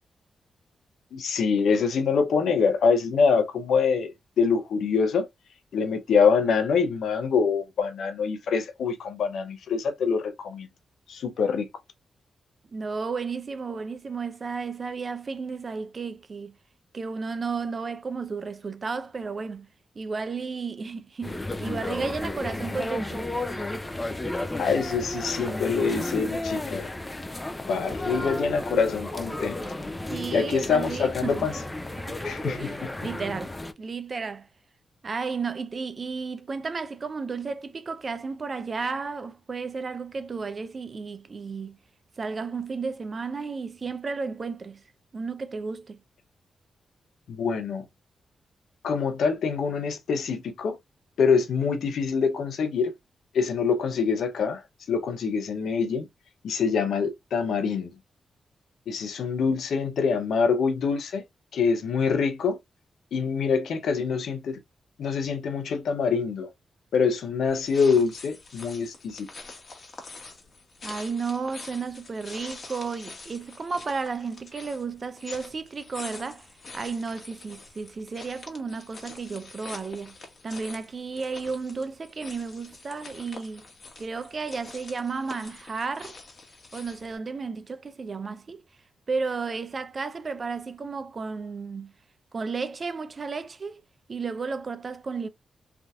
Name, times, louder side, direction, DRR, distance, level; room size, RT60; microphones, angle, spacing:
voice 1, 1.1-5.3 5.7-10.7 11.1-11.7 24.6-26.9 27.7-29.6 30.3-31.5 32.2-32.9 47.3-47.8 48.8-50.8 51.2-52.9 53.3-54.6 54.9-56.1 56.4-57.9 58.9-61.2 61.5-62.6 63.1-64.6 65.0-66.5 66.9-69.3, left 5 dB, 80° left, 0.7 m, -25 dB
voice 2, 12.7-16.5 16.9-19.7 20.0-23.2 30.1-31.5 32.0-34.5 35.0-41.8 42.2-44.8 45.1-46.0 70.8-76.5 76.7-80.2 80.4-83.6 84.0-86.1 86.7-88.6 89.1-91.9 92.3-93.8 94.1-95.3, right 4 dB, 50° right, 0.6 m, -33 dB
sound 1, 21.2-33.7, left 1 dB, 20° left, 0.6 m, -33 dB
sound 2, 67.5-87.2, left 3 dB, 55° left, 1.3 m, -45 dB
3.4 x 2.7 x 2.3 m
cardioid pair, 55°, 0 cm